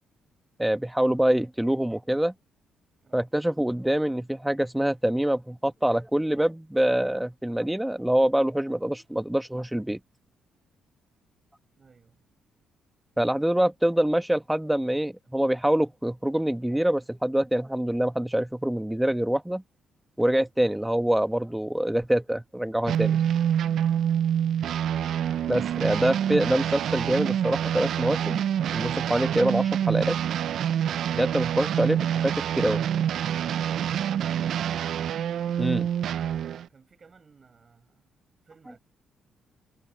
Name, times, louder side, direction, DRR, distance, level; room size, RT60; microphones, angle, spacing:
voice 1, 0.6-2.3 3.1-10.0 13.2-19.6 20.2-23.2 25.5-28.4 28.7-30.2 31.1-32.9 35.6-35.9, right 1 dB, 5° right, 1.3 m, -25 dB
voice 2, 11.8-12.2 24.3-24.7 36.1-38.1 38.4-38.8, right 5 dB, 40° right, 5.9 m, -56 dB
sound 1, 22.9-36.7, right 9 dB, 70° right, 0.4 m, -26 dB
cardioid pair, 90°, 0 cm